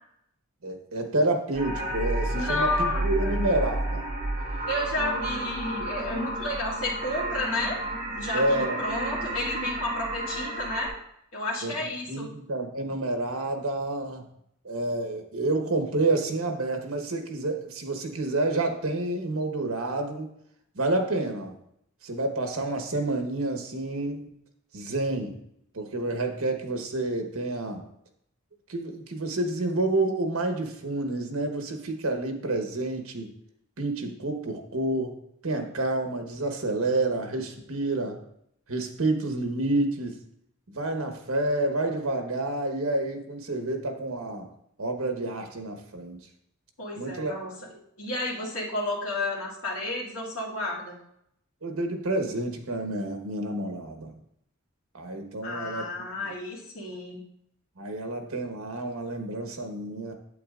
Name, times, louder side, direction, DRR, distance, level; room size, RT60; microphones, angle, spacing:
voice 1, 0.6-4.0 8.3-8.8 11.6-11.8 12.1-14.2 14.6-20.3 20.7-21.5 22.0-24.3 24.7-25.4 25.7-27.8 28.7-33.3 33.8-35.2 35.4-38.2 38.7-40.2 40.7-44.5 44.8-46.2 47.0-47.3 51.6-54.1 54.9-56.3 57.8-60.1, right 2 dB, 75° right, 4 dB, 1.1 m, -29 dB
sound 1, 1.5-10.9, right 1 dB, 30° right, 2.0 m, -31 dB
voice 2, 2.3-3.4 4.7-7.8 8.2-10.9 11.3-12.3 46.8-47.5 48.0-51.0 55.4-57.2, left 2 dB, 85° left, -4 dB, 2.1 m, -31 dB
8.5 x 8.3 x 2.5 m, 0.74 s
head